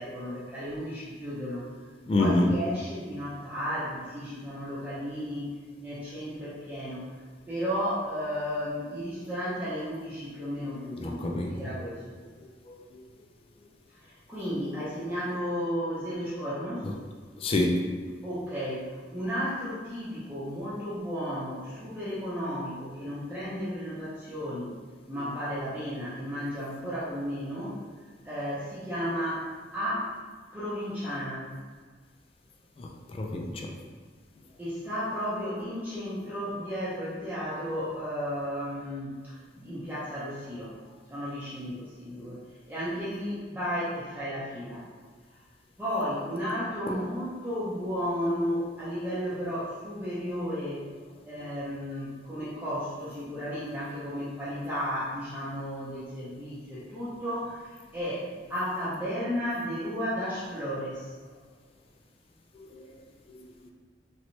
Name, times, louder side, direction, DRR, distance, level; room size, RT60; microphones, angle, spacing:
voice 1, 0.0-1.7 2.2-5.6 5.8-7.0 7.5-12.2 14.0-16.8 18.2-18.9 19.1-24.7 25.1-27.7 28.2-29.5 29.7-30.1 30.5-31.5 34.6-40.7 41.1-42.4 42.7-44.9 45.8-50.8 51.3-58.2 58.5-61.1, equal, 10° right, -10 dB, 0.6 m, -33 dB
voice 2, 2.1-2.5 11.0-11.7 12.7-12.8 16.8-16.9 17.4-18.0 32.8-33.7 46.9-47.0 62.7-62.8 63.3-63.7, left 2 dB, 30° left, 1 dB, 0.3 m, -28 dB
3.0 x 3.0 x 2.7 m, 1.5 s
head